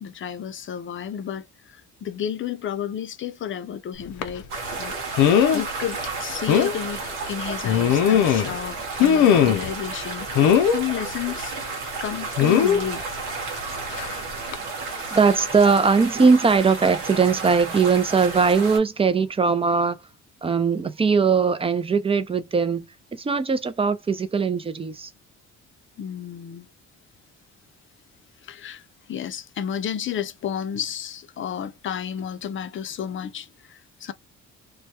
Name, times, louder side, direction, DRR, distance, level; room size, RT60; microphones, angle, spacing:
voice 1, 0.0-4.5 4.8-10.3 10.6-11.5 12.0-13.0 26.0-26.7 28.4-28.8 29.1-34.1, left 9 dB, 40° left, 0.5 m, -32 dB
sound 1, 4.2-4.4 5.2-5.6 6.0-6.1 6.5-6.7 7.6-8.6 9.0-9.7 10.4-10.8 12.4-12.8 14.0-14.1 14.5-14.6, left 9 dB, 90° left, 0.5 m, -18 dB
sound 2, 4.5-18.8, right 4 dB, 85° right, 0.9 m, -32 dB
voice 2, 15.1-20.0 20.4-25.1, right 5 dB, 20° right, 0.4 m, -20 dB
2.2 x 2.2 x 2.8 m
cardioid pair, 90°, 30 cm